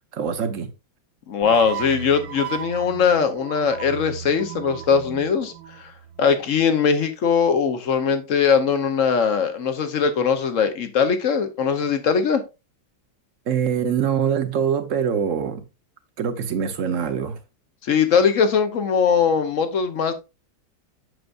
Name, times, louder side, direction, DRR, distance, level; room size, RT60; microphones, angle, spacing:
voice 1, 0.1-0.7 13.5-15.6 16.2-17.4, right 7 dB, 50° right, 1.1 m, -24 dB
voice 2, 1.3-5.9 6.2-12.4 17.8-20.1, left 6 dB, 55° left, 1.1 m, -20 dB
sound 1, 1.4-6.6, right 9 dB, 75° right, 1.5 m, -36 dB
7.9 x 6.7 x 2.5 m
omnidirectional pair, 2.0 m